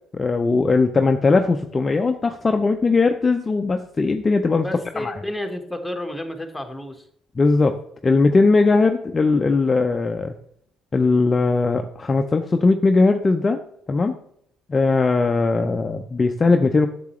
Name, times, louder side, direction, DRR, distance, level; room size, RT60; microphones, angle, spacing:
voice 1, 0.1-4.7 5.0-5.2 7.4-7.8 8.0-10.3 10.9-13.6 13.9-14.2 14.7-16.9, left 3 dB, 30° left, 5 dB, 0.6 m, -19 dB
voice 2, 4.6-7.0, left 1 dB, 5° left, 4 dB, 1.5 m, -31 dB
8.2 x 6.9 x 3.1 m, 0.69 s
hypercardioid pair, 65°, 0 cm